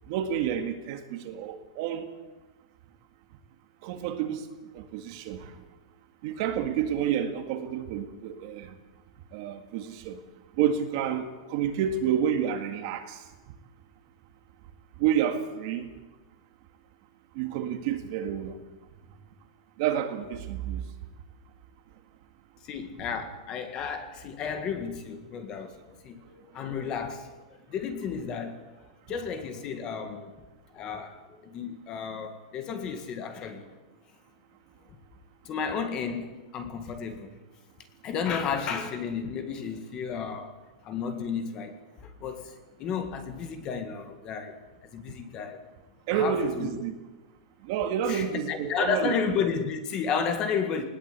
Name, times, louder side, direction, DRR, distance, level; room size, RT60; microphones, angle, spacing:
voice 1, 0.1-2.1 3.8-4.5 4.7-5.5 6.2-8.8 9.3-10.2 10.6-13.2 15.0-15.9 17.4-18.6 19.8-20.8 46.1-47.0 47.6-49.4, right 9 dB, 35° right, 7 dB, 1.9 m, -29 dB
voice 2, 22.7-25.8 26.0-27.3 27.7-28.6 29.1-30.3 30.7-33.7 35.5-37.4 38.0-40.5 40.8-41.8 42.0-42.5 42.8-44.6 44.8-45.6 46.1-46.8 48.1-50.8, left 6 dB, 20° left, 7 dB, 1.8 m, -32 dB
19.5 x 18.5 x 8.4 m, 1.2 s
supercardioid pair, 180°, 4 cm